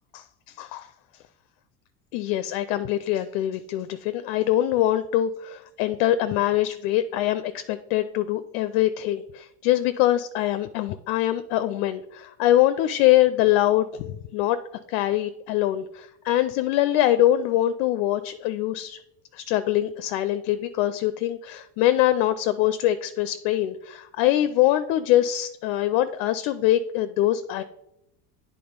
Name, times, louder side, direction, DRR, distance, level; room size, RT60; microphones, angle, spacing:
voice 1, 0.1-0.9 2.1-14.6 14.9-19.0 19.3-27.6, left 13 dB, 65° left, 12 dB, 0.6 m, -23 dB
8.6 x 3.7 x 5.1 m, 0.81 s
hypercardioid pair, 85°, 49 cm